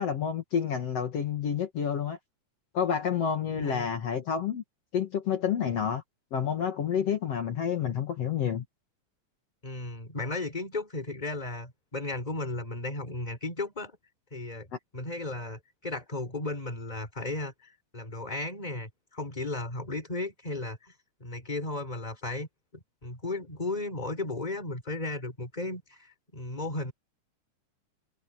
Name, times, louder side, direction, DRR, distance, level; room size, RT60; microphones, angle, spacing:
voice 1, 0.0-2.2 2.7-4.6 4.9-6.0 6.3-8.6, left 8 dB, 55° left, 2.8 m, -29 dB
voice 2, 3.6-3.9 9.6-13.9 14.3-14.7 14.9-20.9 21.2-22.5 22.7-26.9, left 2 dB, 15° left, 4.1 m, -35 dB
omnidirectional pair, 3.5 m